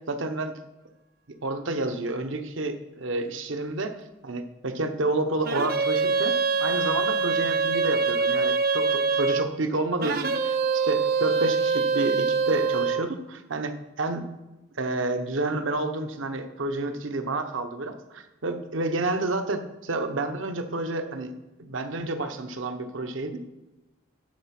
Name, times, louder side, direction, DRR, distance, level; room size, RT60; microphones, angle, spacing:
voice 1, 0.1-0.5 1.4-3.9 4.2-6.3 6.6-10.6 10.8-14.2 14.7-21.3 21.6-23.4, right 2 dB, 75° right, 7 dB, 0.9 m, -29 dB
sound 1, 5.4-9.5 10.0-13.0, right 4 dB, 50° right, 0.7 m, -24 dB
10.5 x 4.7 x 5.9 m, 1.0 s
head